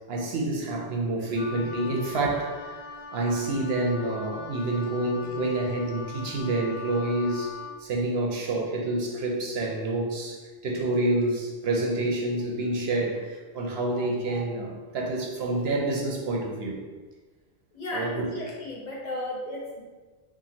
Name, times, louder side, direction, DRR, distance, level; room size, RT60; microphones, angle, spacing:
voice 1, 0.0-2.8 3.1-7.5 7.8-16.8 17.9-18.3, right 2 dB, 75° right, -1 dB, 0.8 m, -28 dB
Wind instrument woodwind instrument, 1.4-7.8, left 5 dB, 85° left, 0.9 m, -41 dB
voice 2, 17.7-19.8, left 1 dB, 45° left, -3 dB, 0.8 m, -34 dB
2.8 x 2.5 x 4.1 m, 1.3 s
omnidirectional pair, 1.1 m